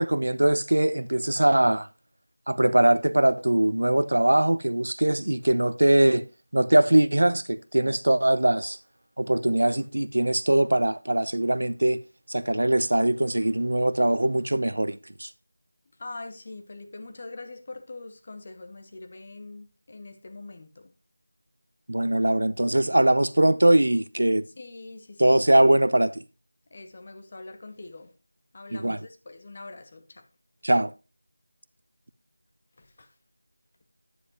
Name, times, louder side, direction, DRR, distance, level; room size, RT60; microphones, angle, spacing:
voice 1, 0.0-1.9 2.5-6.3 6.5-8.8 9.2-12.0 12.3-15.3 21.9-24.4 25.2-26.2 28.7-29.0 30.6-30.9, right 1 dB, 70° right, 0.7 m, -21 dB
voice 2, 16.0-20.9 24.6-25.4 26.7-28.1 28.5-30.3 32.8-33.1, left 2 dB, 20° left, 0.7 m, -43 dB
9.8 x 7.6 x 3.0 m
figure-of-eight pair, 180°, 0 cm